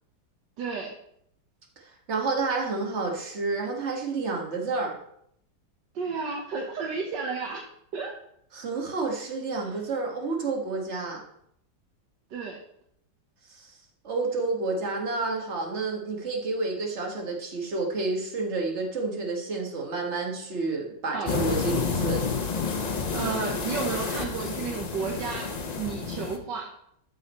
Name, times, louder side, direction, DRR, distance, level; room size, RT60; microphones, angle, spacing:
voice 1, 0.6-0.9 5.9-7.6 7.9-8.1 12.3-12.6 21.1-21.3 23.1-25.5 25.8-26.7, right 5 dB, 75° right, 0 dB, 1.7 m, -32 dB
voice 2, 2.1-4.9 8.5-11.2 13.6-13.7 14.0-22.2, right 3 dB, 40° right, 1 dB, 1.8 m, -30 dB
sound 1, 21.3-26.4, left 5 dB, 55° left, 0.4 m, -30 dB
12.5 x 4.9 x 4.2 m, 0.72 s
omnidirectional pair, 1.9 m